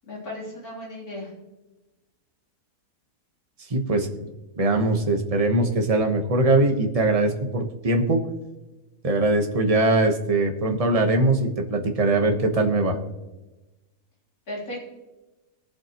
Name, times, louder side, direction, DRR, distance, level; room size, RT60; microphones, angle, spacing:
voice 1, 0.0-1.3 14.5-14.8, left 1 dB, 75° left, -5 dB, 4.0 m, -35 dB
voice 2, 3.7-4.1 4.6-8.2 9.0-13.0, right 2 dB, 25° right, 3 dB, 1.1 m, -21 dB
21.0 x 7.4 x 3.0 m, 1.1 s
omnidirectional pair, 1.6 m